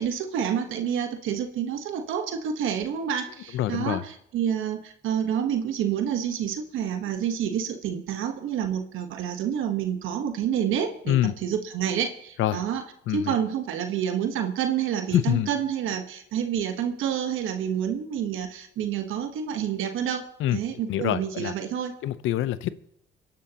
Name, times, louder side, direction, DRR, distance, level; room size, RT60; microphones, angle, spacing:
voice 1, 0.0-11.2 11.4-12.8 13.1-21.9, right 9 dB, 85° right, 7 dB, 1.2 m, -28 dB
voice 2, 3.5-4.0 11.1-11.3 12.4-12.6 13.1-13.3 15.1-15.5 20.4-20.6 20.9-21.5 22.0-22.8, left 13 dB, 85° left, 15 dB, 0.7 m, -25 dB
25.5 x 11.0 x 2.9 m, 0.75 s
cardioid pair, 90°, 20 cm